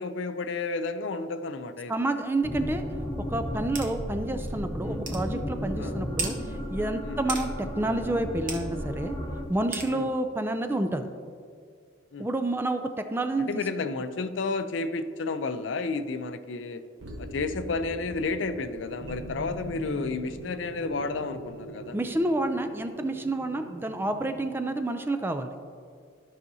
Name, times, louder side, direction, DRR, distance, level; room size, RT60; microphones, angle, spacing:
voice 1, 0.0-1.9 4.8-5.0 5.8-6.0 7.0-7.2 9.9-10.1 12.1-12.3 13.4-16.8 17.2-22.0, left 3 dB, 70° left, 10 dB, 0.5 m, -31 dB
voice 2, 1.9-2.8 3.3-6.4 6.7-9.2 9.5-11.1 12.2-13.6 21.9-25.5, right 2 dB, 10° right, 8 dB, 0.3 m, -29 dB
sound 1, 2.4-9.4, equal, 15° left, 0.8 m, -34 dB
sound 2, 3.8-3.9 4.4-4.5 5.1-5.2 6.2-6.3 7.3-7.5 8.5-8.6 9.7-9.9, right 4 dB, 45° right, 1.0 m, -32 dB
sound 3, 17.0-24.8, right 1 dB, 80° right, 1.2 m, -42 dB
13.5 x 5.7 x 2.7 m, 2.2 s
head